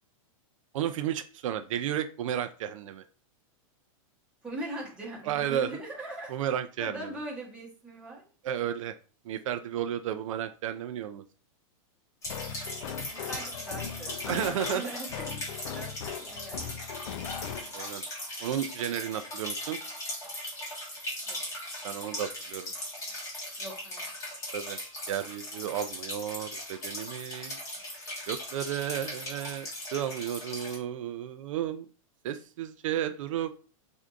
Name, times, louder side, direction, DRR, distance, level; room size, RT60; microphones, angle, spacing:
voice 1, 0.7-3.0 5.2-5.8 6.3-7.1 8.4-8.9 9.3-11.2 14.3-14.8 17.7-18.0 18.4-19.8 21.8-22.7 24.5-24.8 25.1-27.6 28.3-31.9 32.2-33.5, right 10 dB, 65° right, 9 dB, 0.4 m, -33 dB
voice 2, 4.4-6.3 6.8-8.2 13.0-15.4 15.7-16.6 21.3-21.7 23.6-24.0, right 1 dB, 5° right, -4 dB, 1.1 m, -41 dB
sound 1, 12.2-30.8, left 1 dB, 15° left, 1.2 m, -39 dB
sound 2, 12.3-17.9, left 8 dB, 65° left, 0.4 m, -39 dB
4.5 x 2.6 x 2.4 m, 0.37 s
supercardioid pair, 160°, 18 cm